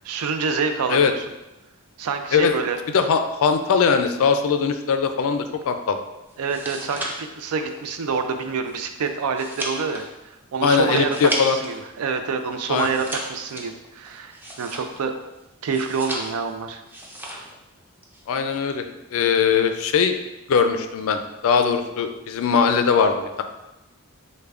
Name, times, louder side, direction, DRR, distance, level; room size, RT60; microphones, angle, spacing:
voice 1, 0.0-1.2 2.0-2.8 6.4-10.0 10.5-15.1 15.6-16.8, right 5 dB, 75° right, 7 dB, 0.4 m, -27 dB
voice 2, 2.9-6.0 10.6-11.6 12.7-12.9 18.3-18.8 19.1-20.2 20.5-23.4, left 6 dB, 65° left, 7 dB, 0.4 m, -20 dB
sound 1, 6.3-11.8 12.1-15.2 15.6-16.5 16.9-17.6 17.8-18.2, right 1 dB, 10° right, 0.4 m, -34 dB
6.5 x 2.2 x 2.4 m, 0.98 s
head